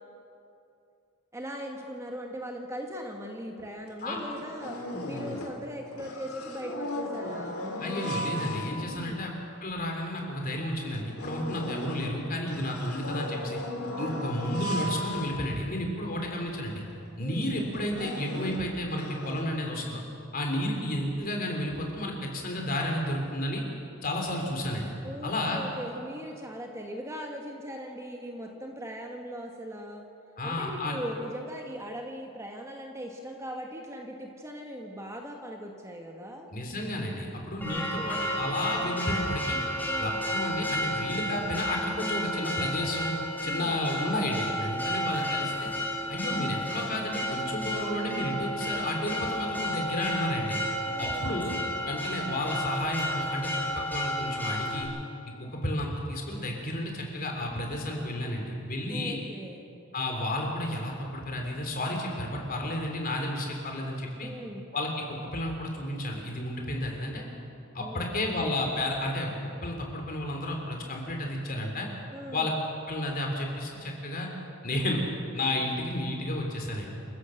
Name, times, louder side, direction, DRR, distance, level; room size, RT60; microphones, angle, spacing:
voice 1, 1.3-7.6 8.9-9.2 13.9-14.3 17.2-17.5 25.0-30.0 30.4-36.5 37.7-38.4 39.8-40.3 43.4-43.8 50.8-51.3 58.9-59.6 64.2-64.6 67.8-68.5 72.1-72.5, equal, 15° right, 2 dB, 1.5 m, -40 dB
sound 1, 3.6-3.7 4.0-5.7 5.9-9.1 9.7-9.8 10.2-10.3 10.8-15.9 16.5-16.6 16.9-17.1 17.6-19.4, left 1 dB, 70° left, 2.8 m, -36 dB
voice 2, 7.8-9.3 9.6-13.6 14.0-16.8 17.2-20.0 20.3-23.6 24.0-24.9 25.2-25.6 30.4-31.0 36.5-39.6 40.0-43.1 43.4-45.7 46.1-50.6 51.0-51.6 51.9-54.9 55.4-59.2 59.9-64.3 64.7-67.2 67.7-69.3 69.6-71.9 72.3-72.5 72.9-74.3 74.6-75.0 75.3-76.9, left 1 dB, 40° left, 1 dB, 3.5 m, -32 dB
Church bell, 37.6-54.8, equal, 10° left, 4.0 m, -32 dB
28.0 x 15.0 x 6.5 m, 2.7 s
head